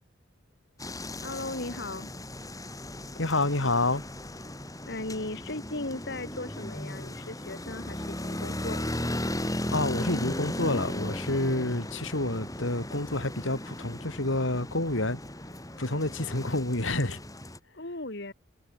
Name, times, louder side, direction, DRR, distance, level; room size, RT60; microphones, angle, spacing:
sound 1, 0.8-17.6, left 1 dB, 20° left, 5.3 m, -36 dB
voice 1, 1.2-2.1 4.9-8.9 17.7-18.3, left 2 dB, 60° left, 2.8 m, -37 dB
voice 2, 3.2-4.0 9.7-15.2 15.8-17.2, left 2 dB, 80° left, 4.2 m, -28 dB
head